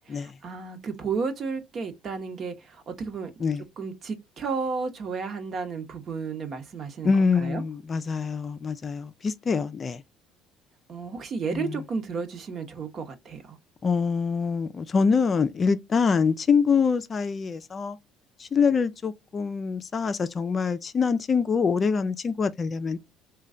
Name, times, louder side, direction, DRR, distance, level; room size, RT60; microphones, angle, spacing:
voice 1, 0.1-3.3 3.8-7.6 10.9-13.6, right 5 dB, 50° right, 1.0 m, -33 dB
voice 2, 7.0-10.0 11.5-11.8 13.8-18.0 18.4-23.0, left 5 dB, 40° left, 0.4 m, -25 dB
3.1 x 2.3 x 3.7 m
supercardioid pair, 80°, 0 cm